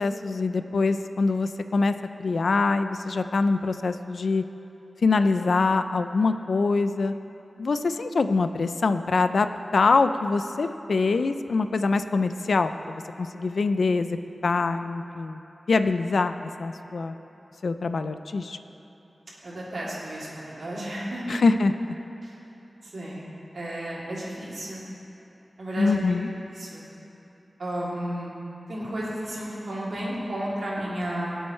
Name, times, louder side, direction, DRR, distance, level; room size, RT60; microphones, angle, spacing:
voice 1, 0.0-1.9 2.2-4.4 5.0-7.1 7.6-9.5 9.7-14.2 14.4-15.4 15.7-17.1 17.6-18.6 21.3-22.0 25.8-26.3, left 3 dB, 80° left, 9 dB, 0.4 m, -24 dB
voice 2, 19.4-21.4 22.2-22.3 22.8-23.3 23.5-24.8 25.6-26.1 26.6-26.8 27.6-28.3 28.7-31.4, right 1 dB, 75° right, -7 dB, 3.0 m, -32 dB
22.0 x 7.9 x 3.3 m, 2.9 s
wide cardioid pair, 100°, 0 cm